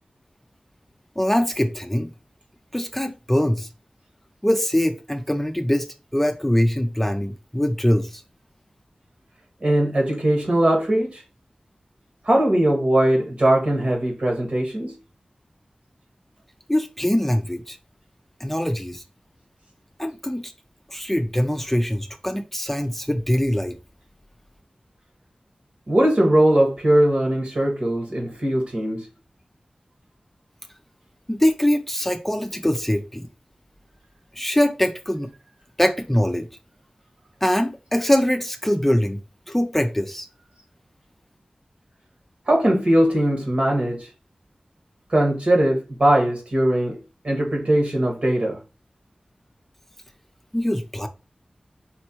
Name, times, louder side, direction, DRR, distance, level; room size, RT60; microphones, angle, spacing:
voice 1, 1.2-2.1 2.7-3.7 4.4-8.2 16.7-17.8 18.4-19.0 20.0-20.5 20.9-23.8 31.3-33.3 34.3-35.3 35.8-36.5 37.4-39.2 39.5-40.3 50.5-51.1, left 1 dB, 10° left, 0.5 m, -23 dB
voice 2, 9.6-11.2 12.2-14.9 25.9-29.0 42.5-44.1 45.1-47.0 47.2-48.6, right 1 dB, 60° right, 1.5 m, -20 dB
4.4 x 3.1 x 2.9 m
cardioid pair, 40°, 2 cm